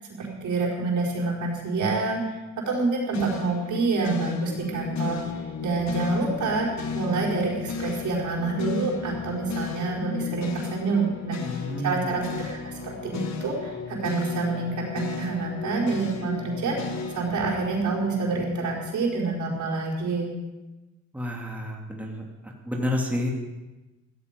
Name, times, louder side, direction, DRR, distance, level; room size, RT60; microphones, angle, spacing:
voice 1, 0.2-2.4 2.7-6.7 6.9-12.6 12.8-20.3, right 3 dB, 70° right, -2 dB, 4.9 m, -27 dB
sound 1, 3.1-19.4, left 6 dB, 65° left, 1.8 m, -35 dB
voice 2, 11.4-12.0 21.1-22.2 22.6-23.3, left 1 dB, 5° right, -1 dB, 2.8 m, -29 dB
15.5 x 14.0 x 5.3 m, 1.1 s
cardioid pair, 90°, 30 cm